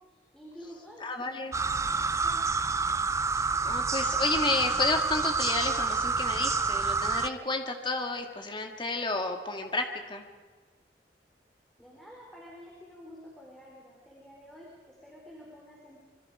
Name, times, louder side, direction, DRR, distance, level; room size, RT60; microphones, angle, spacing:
voice 1, 0.0-2.4 11.8-16.0, equal, ahead, -4 dB, 4.4 m, -50 dB
voice 2, 1.0-1.6 3.3-10.2, left 3 dB, 30° left, 4 dB, 2.1 m, -31 dB
sound 1, 1.5-7.3, right 4 dB, 15° right, 0.5 m, -28 dB
26.0 x 24.0 x 5.0 m, 1.4 s
head